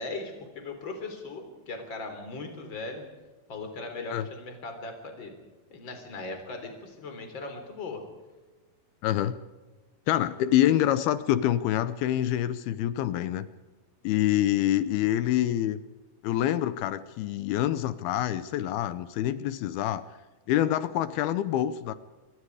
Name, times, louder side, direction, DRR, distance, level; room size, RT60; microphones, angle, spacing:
voice 1, 0.0-3.0 3.5-5.3 5.7-8.0, left 3 dB, 30° left, 5 dB, 4.2 m, -38 dB
voice 2, 9.0-9.3 10.1-13.5 14.0-15.8 16.2-20.0 20.5-21.9, left 12 dB, 75° left, 14 dB, 2.5 m, -26 dB
27.0 x 23.0 x 4.9 m, 1.2 s
omnidirectional pair, 4.8 m